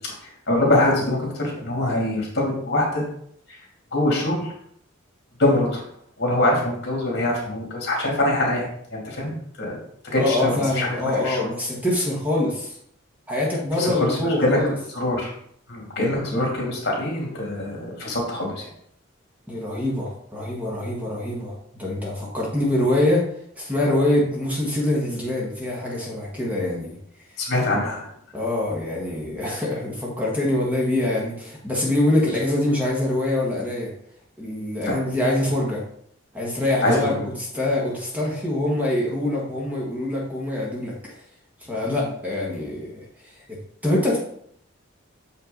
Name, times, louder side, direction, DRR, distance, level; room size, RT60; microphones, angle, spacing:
voice 1, 0.5-3.0 3.5-3.6 3.9-4.5 5.4-5.8 6.2-9.8 10.0-11.4 13.8-14.6 14.9-15.3 15.7-18.6 27.4-28.1 34.8-35.0 36.8-37.2, left 1 dB, 55° left, -2 dB, 2.6 m, -24 dB
voice 2, 10.2-12.8 13.3-14.7 19.5-23.3 23.6-27.0 28.3-33.9 34.4-35.8 36.3-41.1 41.6-43.6 43.8-44.2, left 1 dB, 10° right, -4 dB, 1.5 m, -24 dB
6.7 x 5.7 x 3.9 m, 0.67 s
head